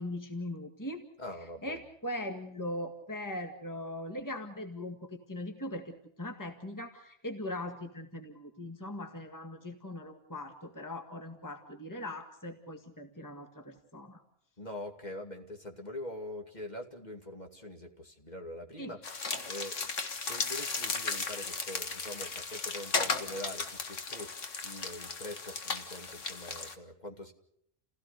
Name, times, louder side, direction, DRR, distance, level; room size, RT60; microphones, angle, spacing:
voice 1, 0.0-1.0 1.6-14.2 18.8-18.9, left 1 dB, 15° left, 5 dB, 2.0 m, -40 dB
voice 2, 1.2-1.8 14.6-19.0 19.5-27.3, left 1 dB, 35° left, 3 dB, 2.5 m, -44 dB
sound 1, 19.0-26.7, left 4 dB, 85° left, 2.0 m, -36 dB
29.5 x 16.5 x 6.7 m, 0.73 s
omnidirectional pair, 1.2 m